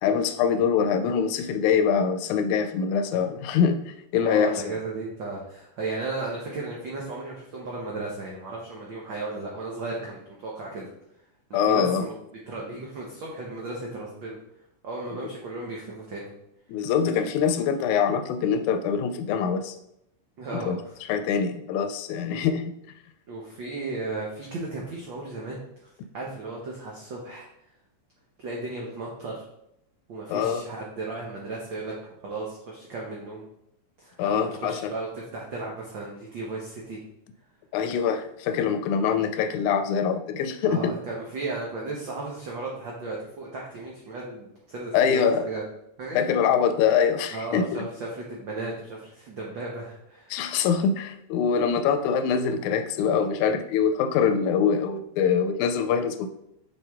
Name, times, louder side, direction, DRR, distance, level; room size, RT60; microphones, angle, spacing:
voice 1, 0.0-4.6 11.5-12.1 16.7-19.8 20.5-20.8 21.1-22.8 30.3-30.7 34.2-34.9 37.7-40.9 44.9-45.5 46.2-47.8 50.3-56.3, left 7 dB, 80° left, 9 dB, 1.9 m, -24 dB
voice 2, 4.2-10.9 11.5-12.1 12.5-14.4 14.8-16.3 20.4-21.0 23.3-27.5 28.4-29.5 30.1-31.9 32.2-33.4 34.0-37.0 40.6-45.7 46.0-46.2 47.3-50.4, right 3 dB, 85° right, -3 dB, 1.0 m, -35 dB
5.6 x 5.5 x 3.5 m, 0.79 s
omnidirectional pair, 3.5 m